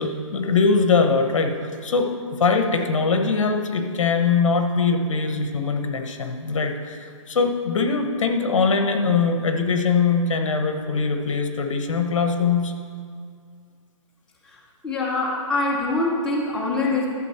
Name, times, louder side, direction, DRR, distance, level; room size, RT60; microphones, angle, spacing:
voice 1, 0.0-2.1 2.4-12.7, left 4 dB, 65° left, 5 dB, 1.2 m, -22 dB
voice 2, 14.5-17.1, left 2 dB, 5° left, -5 dB, 0.8 m, -24 dB
12.5 x 7.3 x 4.3 m, 2.2 s
hypercardioid pair, 160°, 17 cm